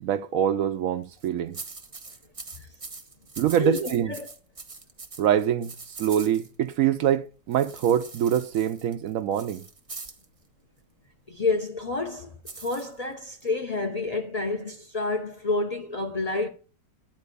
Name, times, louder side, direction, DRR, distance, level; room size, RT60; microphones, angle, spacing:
voice 1, 0.0-1.6 3.4-4.1 5.2-9.6, right 10 dB, 80° right, 0.7 m, -25 dB
sound 1, 1.0-1.3 1.5-6.8 7.5-10.2 12.4-13.5, right 4 dB, 25° right, 0.7 m, -42 dB
voice 2, 3.6-4.3 11.3-16.5, left 3 dB, 70° left, 0.3 m, -29 dB
11.0 x 4.5 x 6.7 m
omnidirectional pair, 2.0 m